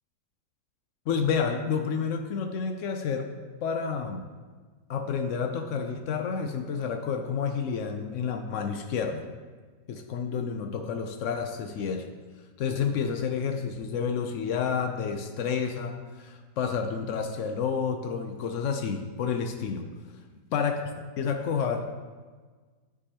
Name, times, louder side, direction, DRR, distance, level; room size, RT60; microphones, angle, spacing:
voice 1, 1.1-3.3 3.6-4.2 4.9-9.3 9.9-12.1 12.6-19.8 20.5-20.8 21.2-21.9, left 6 dB, 80° left, 5 dB, 0.6 m, -30 dB
12.0 x 4.8 x 2.8 m, 1.4 s
omnidirectional pair, 1.9 m